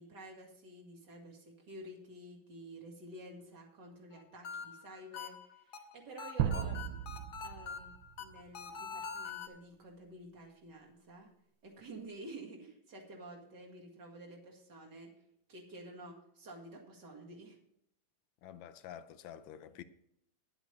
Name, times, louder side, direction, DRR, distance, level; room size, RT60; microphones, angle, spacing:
voice 1, 0.0-6.7 7.4-7.9 8.2-11.3 11.6-15.1 15.5-17.6, right 1 dB, 60° right, 2.6 m, -51 dB
sound 1, 4.1-9.5, left 5 dB, 60° left, 1.5 m, -44 dB
sound 2, 6.4-8.4, right 11 dB, 90° right, 1.4 m, -36 dB
voice 2, 6.5-6.8 18.4-19.8, left 10 dB, 80° left, 1.4 m, -48 dB
10.5 x 8.2 x 5.2 m
omnidirectional pair, 2.2 m